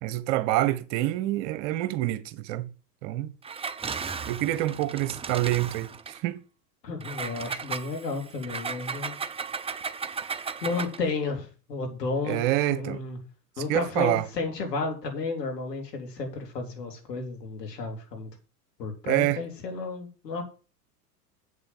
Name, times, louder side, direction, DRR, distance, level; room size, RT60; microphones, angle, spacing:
voice 1, 0.0-2.7 3.0-3.3 4.3-6.4 12.3-13.0 13.7-14.3 19.1-19.4, right 15 dB, 55° right, 1.3 m, -27 dB
Engine, 3.4-6.2 7.0-11.1, right 5 dB, 10° right, 0.7 m, -35 dB
voice 2, 6.8-9.2 10.0-12.4 12.7-13.2 13.6-18.3 18.8-20.5, left 3 dB, 85° left, 3.9 m, -32 dB
8.3 x 6.7 x 7.3 m
hypercardioid pair, 95°, 48 cm